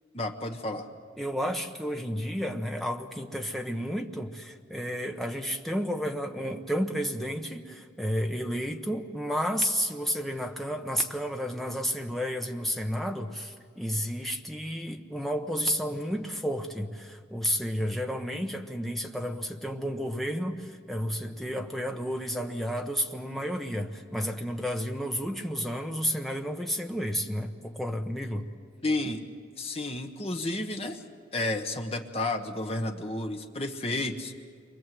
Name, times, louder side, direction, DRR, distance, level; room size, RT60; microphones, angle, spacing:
voice 1, 0.1-0.9 28.8-29.2 29.6-31.0 31.3-34.3, left 2 dB, 30° left, 4 dB, 1.3 m, -31 dB
voice 2, 1.2-28.4, equal, ahead, 3 dB, 1.2 m, -31 dB
29.0 x 24.0 x 7.8 m, 2.1 s
head